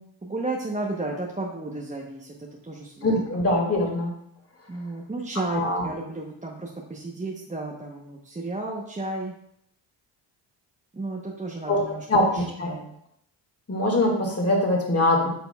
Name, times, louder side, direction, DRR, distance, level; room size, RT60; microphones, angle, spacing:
voice 1, 0.0-3.4 4.7-9.3 10.9-12.1 12.3-12.9, right 2 dB, 15° right, -1 dB, 0.9 m, -33 dB
voice 2, 3.0-4.1 5.5-5.8 11.7-11.8 12.1-12.2 12.6-12.7 13.7-15.3, left 1 dB, 30° left, 0 dB, 2.0 m, -22 dB
8.8 x 5.0 x 2.3 m, 0.74 s
cardioid pair, 75°, 49 cm